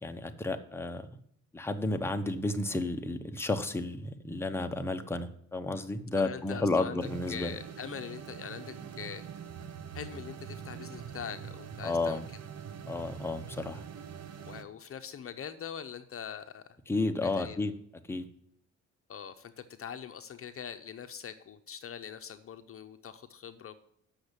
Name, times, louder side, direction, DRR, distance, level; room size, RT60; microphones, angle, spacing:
voice 1, 0.0-1.1 1.5-7.6 11.8-12.2 12.9-13.8 16.9-17.7 18.1-18.3, left 2 dB, 10° left, 6 dB, 1.0 m, -32 dB
voice 2, 6.1-7.0 7.3-9.2 9.9-12.2 14.5-16.6 17.2-17.6 19.1-23.8, left 8 dB, 50° left, 9 dB, 0.8 m, -42 dB
sound 1, 7.0-14.6, right 8 dB, 55° right, 1.1 m, -44 dB
8.3 x 6.4 x 8.2 m, 0.69 s
cardioid pair, 90°, 30 cm